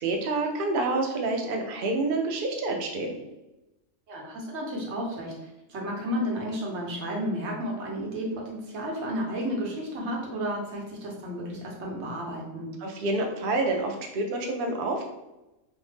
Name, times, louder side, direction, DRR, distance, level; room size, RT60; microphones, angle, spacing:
voice 1, 0.0-3.2 12.8-15.0, right 2 dB, 75° right, 3 dB, 0.5 m, -28 dB
voice 2, 4.1-12.7, equal, 60° right, -1 dB, 0.9 m, -32 dB
2.7 x 2.1 x 3.1 m, 0.98 s
omnidirectional pair, 1.5 m